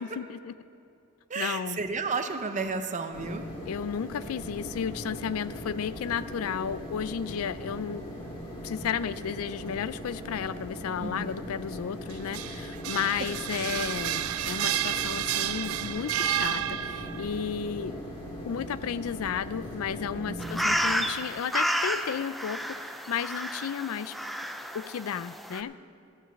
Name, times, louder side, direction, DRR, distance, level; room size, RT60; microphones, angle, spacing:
voice 1, 0.0-0.5 1.4-1.8 3.7-8.3 8.6-18.1 18.5-24.1 24.7-25.8, left 7 dB, 80° left, 16 dB, 0.4 m, -33 dB
voice 2, 1.3-3.5 11.0-11.3 12.7-12.8 20.3-20.6, right 4 dB, 35° right, 7 dB, 0.7 m, -32 dB
sound 1, 3.1-20.8, equal, 25° left, 2.3 m, -40 dB
sound 2, 12.1-17.3, right 12 dB, 75° right, 0.3 m, -31 dB
sound 3, 20.4-25.6, equal, ahead, 0.4 m, -31 dB
14.5 x 6.2 x 6.9 m, 2.6 s
head